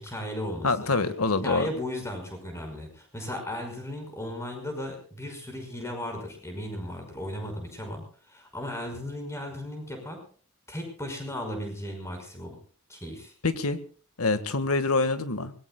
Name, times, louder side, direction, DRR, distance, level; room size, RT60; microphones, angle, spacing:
voice 1, 0.0-0.7 1.4-10.2 10.7-12.6 12.9-13.3, left 1 dB, 10° left, 4 dB, 5.6 m, -36 dB
voice 2, 0.6-1.7 13.4-13.8 14.2-15.5, left 3 dB, 80° left, 11 dB, 1.8 m, -25 dB
24.5 x 21.0 x 2.3 m, 0.43 s
head